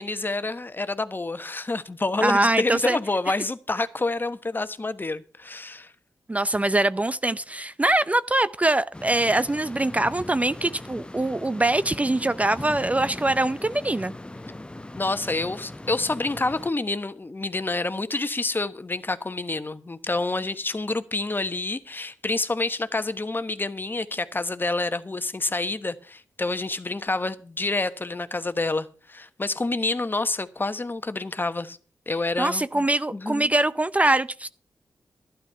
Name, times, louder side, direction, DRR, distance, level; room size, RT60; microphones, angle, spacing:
voice 1, 0.0-5.9 14.9-31.8 32.1-32.9 33.1-33.5, left 2 dB, 30° left, 1.2 m, -28 dB
voice 2, 2.2-3.0 6.3-14.1 32.4-34.5, right 2 dB, 20° right, 0.5 m, -23 dB
sound 1, 8.9-16.7, left 1 dB, 15° left, 0.8 m, -40 dB
12.0 x 10.5 x 5.7 m
cardioid pair, 50°, 7 cm